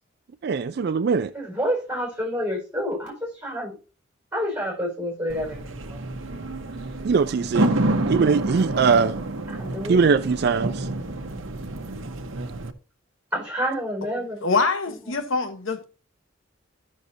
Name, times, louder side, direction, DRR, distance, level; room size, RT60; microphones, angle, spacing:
voice 1, 0.4-1.3 7.0-7.7 8.1-9.1 9.9-10.8, right 5 dB, 55° right, 0.3 m, -21 dB
voice 2, 1.3-3.7 4.3-6.0 8.5-8.7 9.5-10.0 13.3-14.5, equal, 10° right, 4.7 m, -29 dB
sound 1, 5.3-12.7, right 1 dB, 85° right, 0.9 m, -28 dB
voice 3, 14.4-15.8, left 4 dB, 80° left, 1.1 m, -24 dB
13.5 x 6.4 x 2.7 m
head